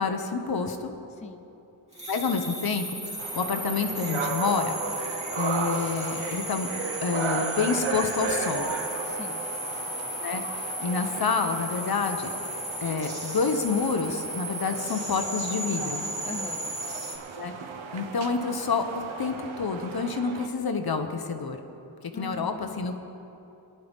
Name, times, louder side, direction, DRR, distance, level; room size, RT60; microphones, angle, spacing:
voice 1, 0.0-0.9 2.1-4.8 5.4-6.7 7.0-8.7 10.2-10.4 10.8-12.3 12.8-16.1 17.4-17.5 17.9-21.6 22.1-22.9, left 5 dB, 50° left, 6 dB, 1.0 m, -28 dB
voice 2, 1.1-1.5 9.0-9.5 16.2-16.7 22.1-22.9, left 3 dB, 15° left, 7 dB, 0.4 m, -41 dB
sound 1, 1.9-17.2, equal, 15° right, 2.7 m, -35 dB
sound 2, 3.2-20.5, right 5 dB, 90° right, 1.0 m, -35 dB
22.5 x 10.5 x 3.6 m, 2.9 s
wide cardioid pair, 130°, 45 cm